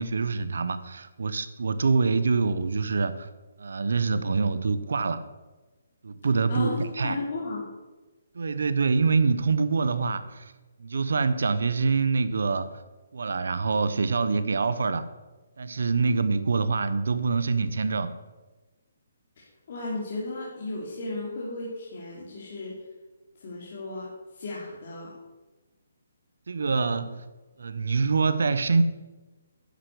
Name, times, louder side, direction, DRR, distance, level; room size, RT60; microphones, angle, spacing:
voice 1, 0.0-3.3 3.6-5.2 6.0-7.2 8.3-10.5 10.8-12.7 13.1-15.1 15.6-18.1 26.5-27.3 27.6-28.8, right 4 dB, 70° right, 13 dB, 1.0 m, -25 dB
voice 2, 6.5-7.7 19.4-22.7 23.4-25.1, left 2 dB, 40° left, -5 dB, 2.8 m, -34 dB
10.5 x 8.2 x 8.3 m, 1.2 s
hypercardioid pair, 175°, 0 cm